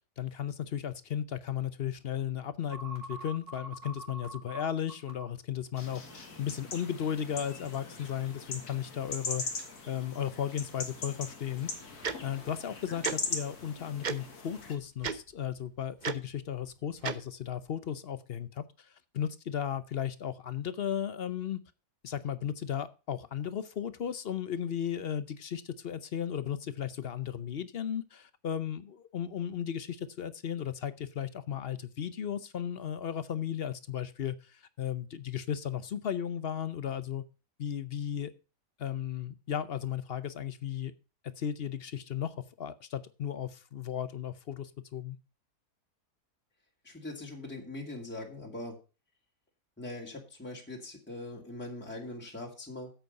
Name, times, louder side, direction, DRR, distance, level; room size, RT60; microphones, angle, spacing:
voice 1, 0.2-11.7 12.2-21.6 22.0-37.2 37.6-38.3 38.8-40.9 41.4-45.2, left 9 dB, 55° left, 14 dB, 0.7 m, -35 dB
sound 1, 2.7-5.2, right 2 dB, 70° right, 3.4 m, -43 dB
sound 2, 5.8-14.8, left 4 dB, 75° left, 2.5 m, -40 dB
Tick-tock, 12.0-12.1 13.0-13.1 14.0-14.2 15.0-15.2 16.0-16.1 17.0-17.1, right 6 dB, 45° right, 0.6 m, -32 dB
voice 2, 46.8-48.8 49.8-52.9, left 2 dB, 5° left, -1 dB, 2.4 m, -41 dB
8.6 x 8.1 x 5.4 m, 0.33 s
omnidirectional pair, 1.7 m